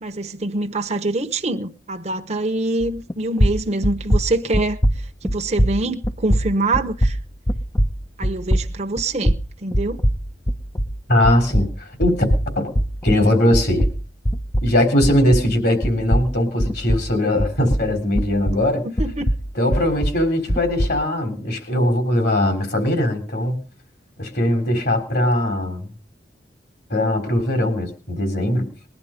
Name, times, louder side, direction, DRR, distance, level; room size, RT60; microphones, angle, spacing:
voice 1, 0.0-4.8 5.2-7.2 8.2-9.3 9.6-10.0 18.8-19.3, right 2 dB, 40° right, 1.0 m, -24 dB
sound 1, 2.8-3.1 3.4-11.0 11.2-15.6 15.8-18.7 19.0-21.0, equal, 15° left, 0.7 m, -22 dB
voice 2, 11.1-11.7 12.0-12.2 12.6-12.7 13.0-13.9 14.6-18.8 19.6-23.6 24.2-25.9 26.9-28.7, left 1 dB, 65° left, 3.7 m, -20 dB
20.5 x 11.0 x 5.1 m
head